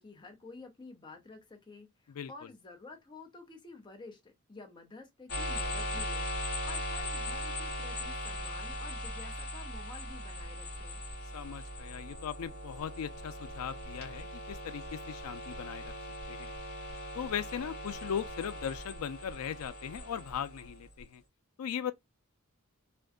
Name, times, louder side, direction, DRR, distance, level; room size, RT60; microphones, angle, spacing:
voice 1, 0.0-11.0, left 3 dB, 20° left, 0.5 m, -51 dB
voice 2, 2.1-2.5 11.3-15.9 16.3-16.5 17.1-21.2 21.6-21.9, left 8 dB, 90° left, 0.4 m, -38 dB
sound 1, 5.3-21.0, left 1 dB, 50° left, 0.9 m, -39 dB
2.5 x 2.2 x 2.2 m
head